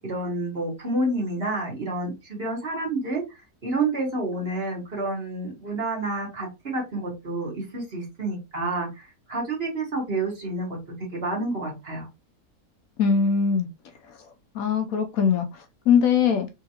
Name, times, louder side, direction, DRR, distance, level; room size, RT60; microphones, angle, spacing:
voice 1, 0.0-12.1, right 2 dB, 40° right, 1.6 m, -29 dB
voice 2, 13.0-13.7 14.1-14.2 14.5-16.5, left 6 dB, 70° left, 1.0 m, -22 dB
3.7 x 3.2 x 2.8 m
omnidirectional pair, 1.6 m